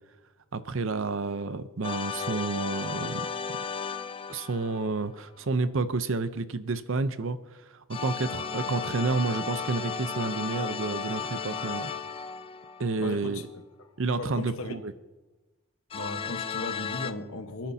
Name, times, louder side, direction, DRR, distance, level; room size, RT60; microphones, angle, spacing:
voice 1, 0.5-3.3 4.3-7.4 7.7-11.9 12.8-13.4 14.0-14.9, right 3 dB, 60° right, 0.6 m, -30 dB
sound 1, 1.8-5.2 7.9-13.3 15.9-17.1, left 6 dB, 25° left, 0.4 m, -34 dB
voice 2, 13.0-13.4 14.2-14.8 15.9-17.7, left 2 dB, 70° left, 1.2 m, -36 dB
28.5 x 10.5 x 2.8 m
head